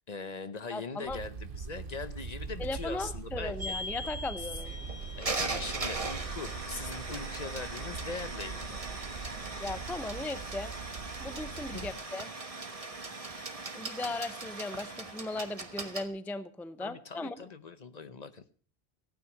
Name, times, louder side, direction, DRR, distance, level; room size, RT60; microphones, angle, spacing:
voice 1, 0.0-3.7 4.4-4.5 5.2-8.9 11.7-11.9 16.8-18.4, left 4 dB, 45° left, 12 dB, 0.8 m, -41 dB
voice 2, 0.7-1.2 2.6-4.7 9.6-10.7 11.2-12.3 13.7-17.4, left 2 dB, ahead, 13 dB, 0.5 m, -37 dB
sound 1, 1.1-11.9, right 5 dB, 65° right, 1.1 m, -42 dB
sound 2, 3.6-16.0, right 2 dB, 35° right, 1.4 m, -39 dB
Bowed string instrument, 4.6-9.7, left 2 dB, 80° left, 7.1 m, -54 dB
15.0 x 9.3 x 5.9 m, 0.43 s
omnidirectional pair, 1.0 m